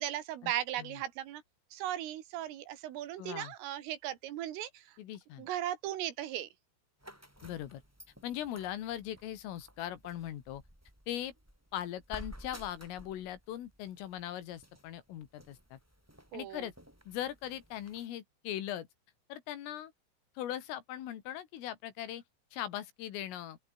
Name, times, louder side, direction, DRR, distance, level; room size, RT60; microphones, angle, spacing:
voice 1, 0.0-1.4 1.7-5.0 5.4-6.5 16.3-16.7, right 12 dB, 80° right, 4.5 m, -37 dB
voice 2, 3.2-3.5 5.0-5.5 7.4-7.8 8.2-10.6 11.1-11.3 11.7-15.8 16.3-16.7 17.1-18.9 19.3-19.9 20.4-22.2 22.5-23.6, left 12 dB, 80° left, 4.7 m, -40 dB
sound 1, 7.0-18.1, equal, 5° right, 7.4 m, -54 dB
open air
omnidirectional pair, 5.9 m